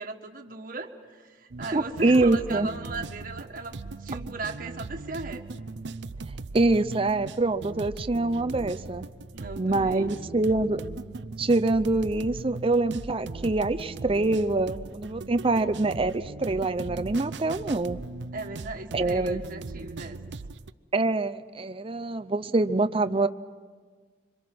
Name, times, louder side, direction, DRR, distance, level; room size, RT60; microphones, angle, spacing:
voice 1, 0.0-3.7 4.0-5.5 9.3-10.1 18.3-20.2, right 3 dB, 50° right, 4 dB, 1.6 m, -37 dB
sound 1, 1.5-20.7, right 3 dB, 75° right, 0.6 m, -39 dB
voice 2, 1.7-2.7 6.5-9.1 9.6-10.8 11.4-18.0 18.9-19.4 20.9-23.3, right 2 dB, 30° right, 11 dB, 0.6 m, -25 dB
26.5 x 25.0 x 6.1 m, 1.5 s
head